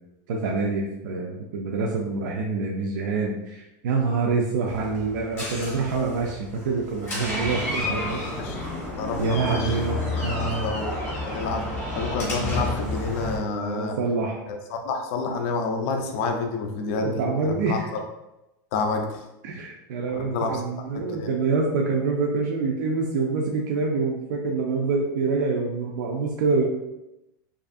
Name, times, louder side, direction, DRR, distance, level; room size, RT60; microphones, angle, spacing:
voice 1, 0.3-8.2 9.2-10.7 13.5-14.4 16.9-17.8 19.4-26.7, right 4 dB, 70° right, -1 dB, 0.4 m, -26 dB
Door, 4.7-13.4, left 1 dB, 20° left, 0.8 m, -31 dB
voice 2, 7.9-8.6 8.9-10.9 11.2-11.6 12.0-14.0 14.5-18.0 18.7-19.2 20.1-20.6 20.9-21.3, left 4 dB, 40° left, 3 dB, 0.4 m, -29 dB
2.6 x 2.4 x 2.5 m, 0.94 s
supercardioid pair, 175°, 11 cm